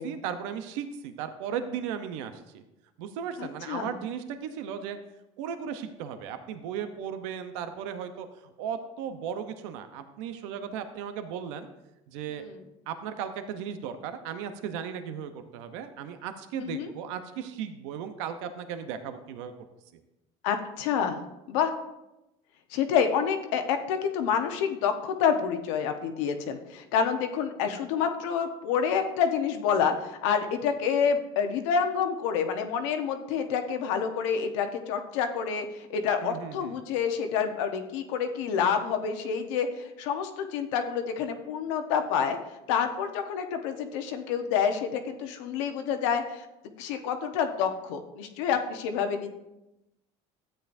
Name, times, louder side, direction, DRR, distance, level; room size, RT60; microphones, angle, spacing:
voice 1, 0.0-2.6 3.0-5.0 5.4-11.7 12.1-12.4 12.9-19.5 36.2-36.7, right 8 dB, 90° right, 9 dB, 0.8 m, -36 dB
voice 2, 3.4-3.9 12.4-12.6 16.6-16.9 20.4-21.2 21.5-21.7 22.7-42.4 42.7-46.5 46.8-49.3, left 7 dB, 90° left, 6 dB, 1.1 m, -28 dB
13.0 x 8.8 x 2.6 m, 0.93 s
cardioid pair, 130°, 15 cm